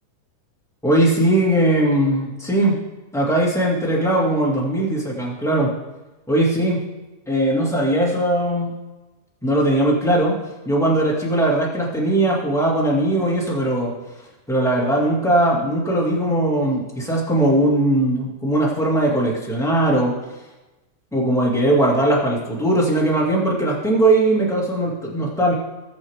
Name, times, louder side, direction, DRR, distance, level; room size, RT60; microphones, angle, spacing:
voice 1, 0.8-2.7 3.1-5.7 6.3-6.8 7.3-8.7 9.4-10.3 10.6-13.9 14.5-20.2 21.1-25.5, right 1 dB, ahead, -4 dB, 1.4 m, -19 dB
19.5 x 6.8 x 3.6 m, 1.1 s
omnidirectional pair, 3.8 m